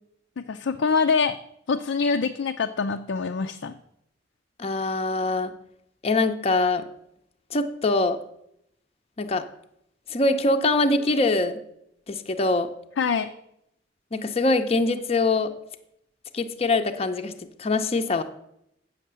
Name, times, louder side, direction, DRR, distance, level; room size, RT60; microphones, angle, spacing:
voice 1, 0.4-1.4 1.7-3.7 13.0-13.3, left 5 dB, 75° left, 5 dB, 0.5 m, -24 dB
voice 2, 4.6-5.5 6.0-6.8 7.5-8.2 9.2-9.4 10.1-11.6 12.1-12.7 14.1-15.5 16.3-17.3 17.6-18.2, left 2 dB, 35° left, 6 dB, 0.6 m, -23 dB
8.5 x 6.5 x 6.7 m, 0.77 s
head